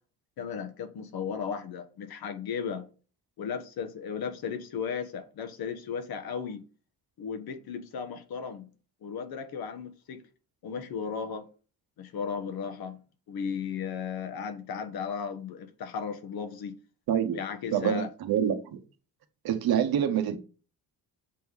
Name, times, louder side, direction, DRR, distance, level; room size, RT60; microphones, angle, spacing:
voice 1, 0.4-2.9 3.4-6.6 7.2-8.7 9.0-10.2 10.6-11.5 12.0-16.8 17.3-18.1, left 6 dB, 75° left, 1.4 m, -35 dB
voice 2, 17.7-18.8 19.4-20.4, right 9 dB, 75° right, 1.3 m, -26 dB
7.5 x 3.7 x 6.3 m
cardioid pair, 130°, 37 cm